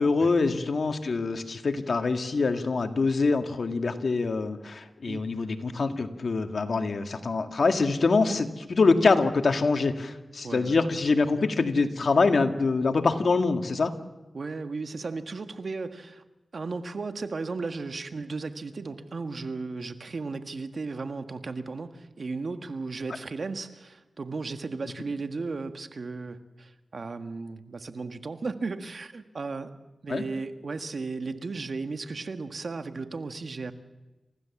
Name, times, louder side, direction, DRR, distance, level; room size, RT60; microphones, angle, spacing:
voice 1, 0.0-13.9 30.1-30.2, left 4 dB, 70° left, 6 dB, 1.9 m, -25 dB
voice 2, 5.0-5.5 10.4-10.8 14.3-16.2 16.5-29.7 30.0-33.7, right 4 dB, 70° right, 8 dB, 1.7 m, -35 dB
29.0 x 16.0 x 7.2 m, 1.1 s
cardioid pair, 45°, 0 cm